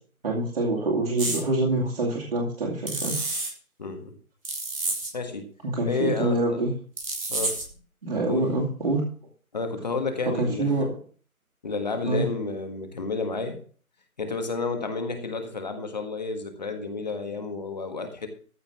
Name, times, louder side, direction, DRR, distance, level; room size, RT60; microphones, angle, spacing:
voice 1, 0.2-3.2 5.6-6.7 8.0-9.1 10.4-10.9 12.0-12.2, right 2 dB, 40° right, -3 dB, 2.6 m, -26 dB
sound 1, 1.2-1.4 2.9-3.5 4.4-5.1 7.0-7.7, right 2 dB, 75° right, 6.8 m, -29 dB
voice 2, 3.8-4.2 5.1-5.5 5.8-6.6 7.3-7.6 8.3-8.5 9.5-10.9 11.6-13.6 14.2-18.3, left 3 dB, 30° left, 6 dB, 1.6 m, -31 dB
14.0 x 5.3 x 7.0 m, 0.42 s
figure-of-eight pair, 170°, 43 cm